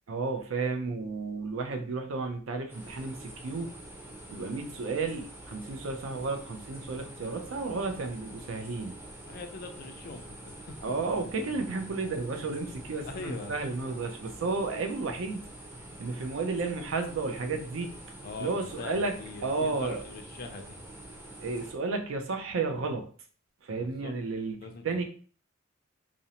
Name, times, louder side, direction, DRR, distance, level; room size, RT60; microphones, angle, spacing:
voice 1, 0.1-3.7 4.3-8.9 10.8-15.5 16.0-17.9 18.4-19.2 19.4-20.0 21.4-23.1 23.6-24.6 24.8-25.0, right 3 dB, 75° right, 5 dB, 0.5 m, -32 dB
sound 1, 2.7-21.7, right 1 dB, 10° right, 0.5 m, -46 dB
voice 2, 9.3-10.8 13.0-13.6 18.2-20.8 23.7-24.2 24.6-25.0, left 3 dB, 45° left, 6 dB, 0.4 m, -42 dB
2.5 x 2.0 x 2.8 m, 0.43 s
head